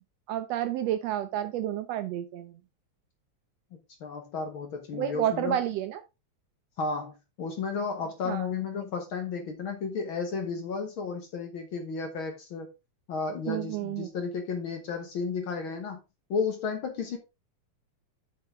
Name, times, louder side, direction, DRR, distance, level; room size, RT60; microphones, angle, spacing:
voice 1, 0.3-2.6 4.9-6.0 8.2-8.5 13.5-14.1, right 11 dB, 75° right, 1.6 m, -30 dB
voice 2, 4.0-5.6 6.8-12.7 13.1-16.0 16.3-17.2, left 5 dB, 55° left, 1.6 m, -33 dB
7.5 x 5.9 x 3.5 m
omnidirectional pair, 3.3 m